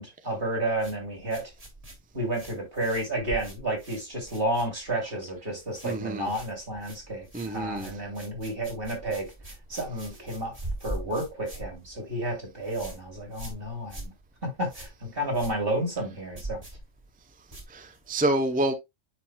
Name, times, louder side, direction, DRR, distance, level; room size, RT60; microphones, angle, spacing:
voice 1, 0.0-1.5 2.1-9.3 9.7-10.5 10.8-14.1 14.4-16.6, right 1 dB, 50° right, 3.2 m, -31 dB
sound 1, 0.7-5.1 5.4-6.0 6.2-18.2, right 1 dB, 30° right, 2.3 m, -42 dB
voice 2, 5.8-6.3 7.3-7.9 17.7-18.7, right 1 dB, 10° right, 0.4 m, -27 dB
9.8 x 4.4 x 2.2 m
omnidirectional pair, 1.3 m